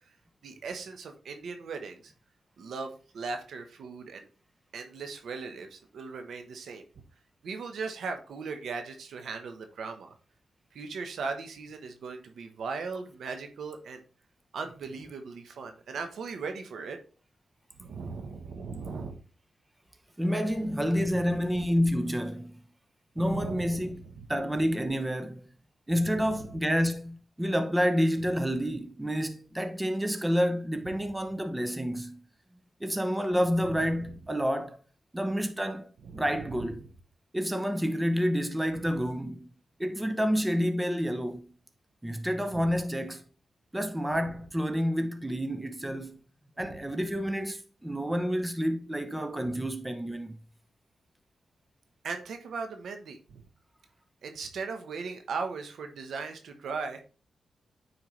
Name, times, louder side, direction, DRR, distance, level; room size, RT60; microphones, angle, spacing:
voice 1, 0.4-2.1 2.6-4.3 4.7-6.8 7.4-10.1 10.7-14.0 14.5-17.0 17.8-19.2 23.2-24.3 26.0-26.4 33.6-33.9 36.0-36.4 42.5-42.7 46.6-46.8 52.0-53.4 54.2-57.0, right 4 dB, 80° right, 1.1 m, -38 dB
voice 2, 20.2-22.6 23.2-24.0 24.3-25.5 25.9-32.2 32.8-34.8 35.1-36.8 37.3-39.5 39.8-41.5 42.0-43.2 43.7-46.2 46.6-50.4, equal, 10° right, 0.9 m, -29 dB
9.3 x 4.5 x 3.3 m
cardioid pair, 70°, 0 cm